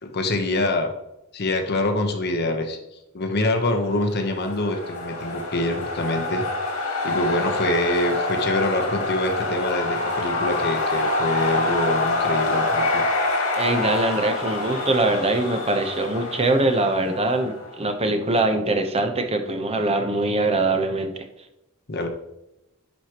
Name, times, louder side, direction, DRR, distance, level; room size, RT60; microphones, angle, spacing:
voice 1, 0.0-0.9 1.3-2.8 3.1-6.4 7.0-13.0 21.9-22.1, left 2 dB, 50° left, 4 dB, 1.0 m, -25 dB
sound 1, 4.0-17.8, left 2 dB, 85° left, 2.2 m, -26 dB
voice 2, 13.5-21.1, right 2 dB, 30° right, 6 dB, 0.9 m, -23 dB
10.5 x 4.8 x 3.0 m, 0.90 s
head